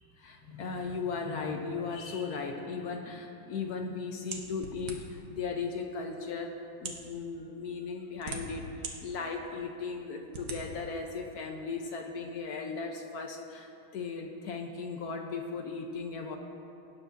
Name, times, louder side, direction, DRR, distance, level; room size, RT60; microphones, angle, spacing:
voice 1, 0.2-16.4, left 4 dB, 65° left, 3 dB, 1.0 m, -37 dB
sound 1, 4.3-5.3 6.1-6.2 6.7-7.1 7.9-8.9 9.4-9.5 10.3-10.6, right 4 dB, 60° right, 1.5 m, -40 dB
18.0 x 9.1 x 2.6 m, 2.9 s
omnidirectional pair, 2.2 m